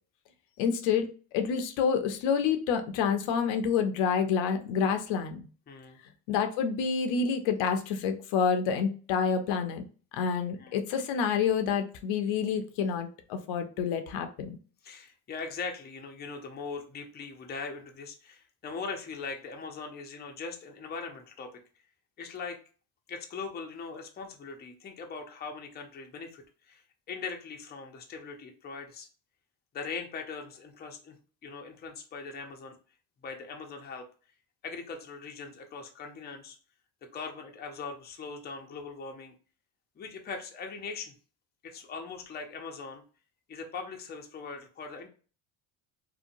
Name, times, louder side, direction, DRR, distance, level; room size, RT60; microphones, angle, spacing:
voice 1, 0.6-5.5 6.3-9.8 10.1-14.6, left 6 dB, 70° left, 7 dB, 0.6 m, -28 dB
voice 2, 5.7-6.0 10.6-10.8 14.8-21.6 22.2-22.6 23.1-29.1 29.7-31.2 31.4-32.8 33.2-34.1 34.6-36.6 37.0-39.3 40.0-41.1 41.6-43.0 43.5-45.1, left 4 dB, 20° left, 3 dB, 0.5 m, -40 dB
2.8 x 2.1 x 2.5 m, 0.38 s
supercardioid pair, 95°, 48 cm